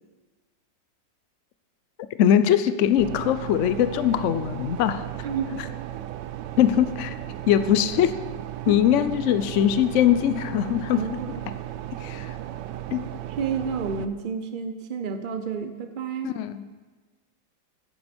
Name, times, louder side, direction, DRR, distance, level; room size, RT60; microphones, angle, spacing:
voice 1, 2.2-5.0 6.6-7.1 7.5-8.1 8.7-11.0 12.0-12.4 12.9-13.1 16.2-16.6, left 10 dB, 90° left, 12 dB, 0.6 m, -21 dB
sound 1, 3.0-14.1, right 13 dB, 75° right, 1.2 m, -35 dB
voice 2, 5.2-5.6 8.7-8.8 10.9-11.3 13.0-13.1 13.4-16.3, right 6 dB, 55° right, 7 dB, 0.5 m, -30 dB
14.0 x 9.6 x 4.4 m, 1.3 s
omnidirectional pair, 2.0 m